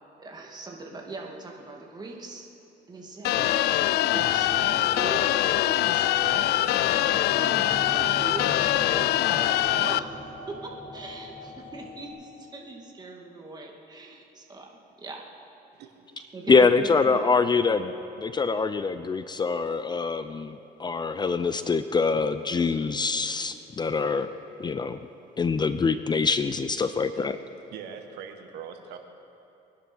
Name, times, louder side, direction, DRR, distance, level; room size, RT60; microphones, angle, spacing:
voice 1, 0.2-2.5 2.9-4.5 4.9-6.5 6.9-14.7 15.0-15.2 16.3-17.2, right 2 dB, 25° right, 0 dB, 2.4 m, -40 dB
sound 1, 3.2-10.0, left 14 dB, 75° left, 0.4 m, -23 dB
sound 2, 4.1-12.1, equal, 10° left, 3.6 m, -41 dB
voice 2, 16.5-17.9 18.2-24.3 24.6-25.0 25.4-27.4, left 4 dB, 25° left, 11 dB, 0.6 m, -24 dB
voice 3, 27.7-29.0, right 7 dB, 80° right, 5 dB, 1.5 m, -41 dB
22.0 x 10.5 x 6.2 m, 2.9 s
cardioid pair, 110°, 17 cm